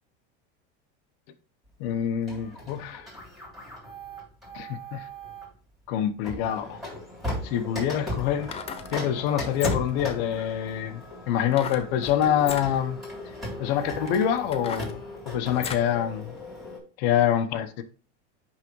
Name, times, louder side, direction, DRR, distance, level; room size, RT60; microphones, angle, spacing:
voice 1, 1.8-3.1 4.5-5.0 5.9-6.8 7.4-8.5 8.9-13.0 13.6-16.3 17.0-17.7, left 10 dB, 60° left, 0.9 m, -26 dB
Printer, 2.3-5.5 6.2-16.8, equal, ahead, 3.0 m, -37 dB
sound 1, 7.2-7.3 8.3-8.9 9.5-10.0 11.5-11.9 12.4-12.7 13.4-13.5 14.0-15.9 16.4-16.5, left 7 dB, 20° left, 0.5 m, -37 dB
10.5 x 3.6 x 3.1 m
supercardioid pair, 145°, 34 cm